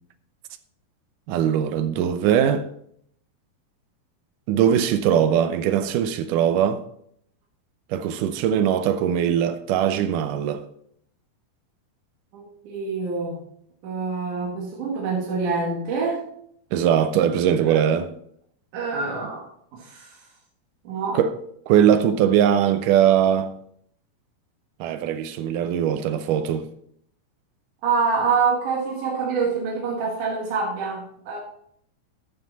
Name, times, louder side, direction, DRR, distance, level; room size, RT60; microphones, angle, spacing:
voice 1, 1.3-2.7 4.5-6.8 7.9-10.6 16.7-18.1 21.1-21.3 21.7-23.5 24.8-26.7, right 9 dB, 85° right, 1.8 m, -21 dB
voice 2, 12.3-13.4 13.8-16.2 17.7-17.8 18.7-19.5 19.7-20.1 20.8-21.2 27.8-31.4, right 4 dB, 60° right, 2.9 m, -26 dB
13.0 x 6.8 x 4.0 m
omnidirectional pair, 4.4 m